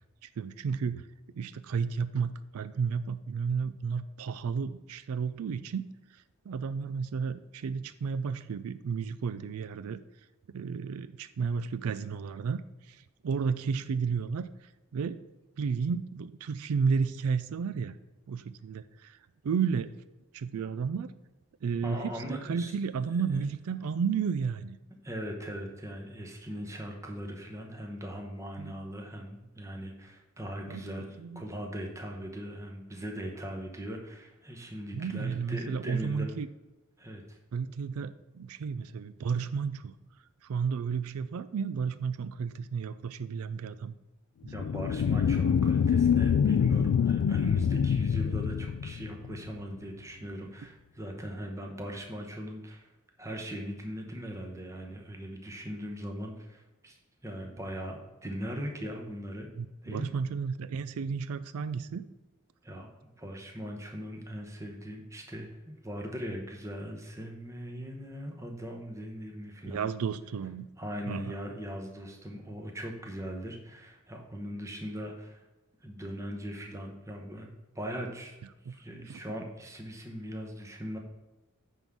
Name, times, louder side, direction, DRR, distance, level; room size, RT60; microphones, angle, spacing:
voice 1, 0.4-1.1 1.4-5.9 6.5-10.0 10.5-12.6 12.9-14.5 14.9-15.2 15.6-18.0 18.3-19.2 19.4-19.9 20.3-21.1 21.6-24.8 28.6-28.7 30.7-31.4 34.9-36.5 37.5-39.9 40.4-43.9 44.4-44.7 59.6-62.0 69.7-70.7 71.1-71.4 79.1-79.2, right 6 dB, 85° right, 13 dB, 0.4 m, -32 dB
voice 2, 21.8-22.7 23.3-23.4 25.0-36.4 37.0-37.4 44.5-52.9 53.2-57.0 57.2-58.0 58.2-59.5 59.8-60.1 62.6-69.9 70.8-75.4 75.8-78.4 78.7-81.0, equal, 15° right, 2 dB, 1.0 m, -40 dB
sound 1, 44.5-49.5, left 7 dB, 85° left, 0.3 m, -25 dB
9.2 x 3.8 x 6.0 m, 1.1 s
head